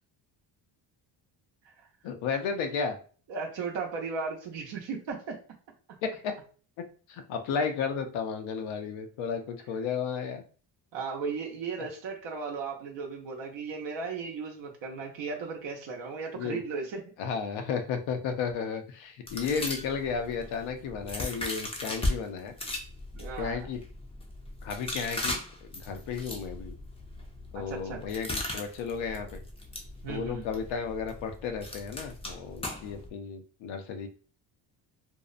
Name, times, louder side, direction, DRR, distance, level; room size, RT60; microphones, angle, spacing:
voice 1, 2.0-3.0 6.0-6.3 7.1-10.4 11.8-11.9 16.3-16.6 17.2-22.5 23.4-23.8 24.6-26.7 27.5-29.4 30.1-34.1, left 6 dB, 85° left, 6 dB, 0.6 m, -33 dB
voice 2, 3.3-5.4 10.9-17.0 23.1-23.7 27.5-28.0 30.0-30.4, right 5 dB, 70° right, 0 dB, 0.7 m, -36 dB
sound 1, 19.3-22.2 22.5-33.1, left 1 dB, 15° left, 0.4 m, -37 dB
2.6 x 2.0 x 2.4 m, 0.41 s
cardioid pair, 95°, 46 cm